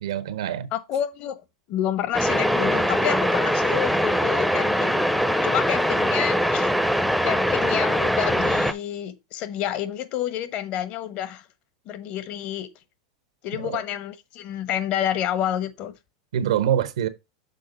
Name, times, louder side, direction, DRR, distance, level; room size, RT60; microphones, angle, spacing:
voice 1, 0.0-0.7 13.6-13.8 16.3-17.1, right 10 dB, 85° right, 0.9 m, -25 dB
voice 2, 0.7-1.4 1.7-5.1 5.4-6.7 7.2-11.5 11.9-12.7 13.4-15.9, left 11 dB, 50° left, 1.1 m, -29 dB
sound 1, 2.1-8.7, equal, ahead, 0.6 m, -22 dB
6.7 x 3.7 x 5.2 m
supercardioid pair, 115°, 3 cm